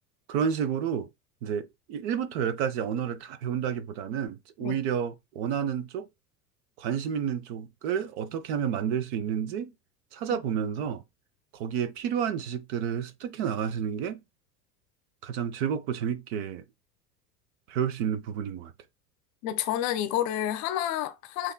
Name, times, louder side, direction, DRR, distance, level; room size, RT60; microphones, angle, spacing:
voice 1, 0.3-1.1 1.4-6.1 6.8-9.7 10.1-11.0 11.5-14.2 15.2-16.6 17.7-18.7, right 8 dB, 45° right, 0.6 m, -30 dB
voice 2, 19.4-21.5, left 12 dB, 40° left, 0.6 m, -29 dB
7.6 x 2.9 x 2.2 m
figure-of-eight pair, 75°, 47 cm